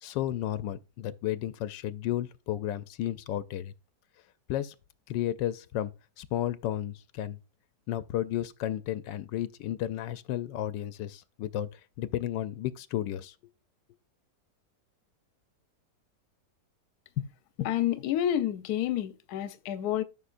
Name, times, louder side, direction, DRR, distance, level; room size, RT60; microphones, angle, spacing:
voice 1, 0.0-3.7 4.5-4.7 5.1-7.4 7.9-13.3, left 12 dB, 85° left, 1.3 m, -33 dB
voice 2, 17.6-20.0, left 11 dB, 70° left, 1.1 m, -29 dB
13.5 x 6.0 x 2.5 m
omnidirectional pair, 1.9 m